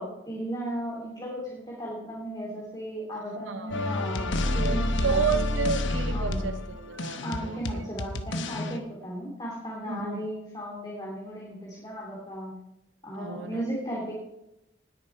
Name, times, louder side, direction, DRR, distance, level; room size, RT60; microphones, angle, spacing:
voice 1, 0.0-5.3 6.1-6.4 7.2-12.5 13.0-14.1, right 1 dB, 20° left, -4 dB, 2.9 m, -36 dB
voice 2, 3.5-3.8 4.6-7.9 9.9-10.3 13.2-13.7, right 5 dB, 85° right, 8 dB, 0.8 m, -31 dB
sound 1, 3.7-8.8, left 1 dB, 80° left, 1.0 m, -29 dB
19.0 x 7.0 x 4.6 m, 0.85 s
head